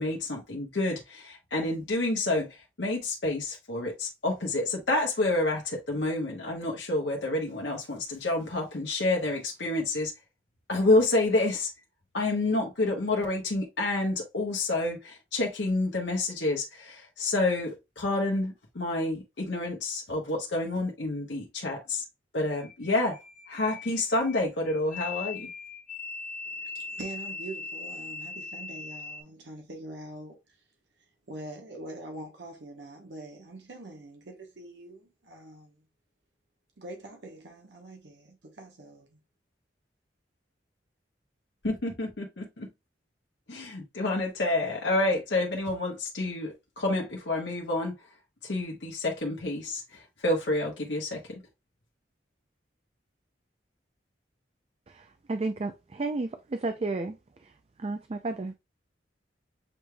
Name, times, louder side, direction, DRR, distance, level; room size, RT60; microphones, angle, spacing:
voice 1, 0.0-10.1 10.7-11.7 12.1-22.0 22.3-23.2 23.5-25.5 41.6-42.7 43.5-47.9 48.4-51.4, left 2 dB, 70° left, 1.0 m, -29 dB
sound 1, 22.5-29.2, left 4 dB, 40° left, 1.3 m, -40 dB
voice 2, 26.5-30.6 31.0-35.8 36.8-39.2, right 2 dB, 70° right, 1.0 m, -44 dB
voice 3, 54.9-57.5 57.8-58.5, right 3 dB, 35° right, 0.4 m, -33 dB
7.0 x 3.3 x 2.2 m
head